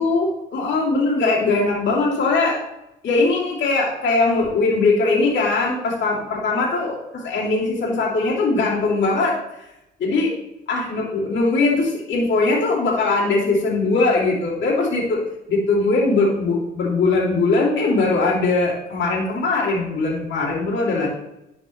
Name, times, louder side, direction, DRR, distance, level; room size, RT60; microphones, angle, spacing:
voice 1, 0.0-2.6 3.0-9.6 10.0-10.3 10.7-15.2 15.5-21.1, left 3 dB, 65° left, -4 dB, 2.6 m, -20 dB
11.0 x 5.2 x 3.1 m, 0.88 s
cardioid pair, 90°, 20 cm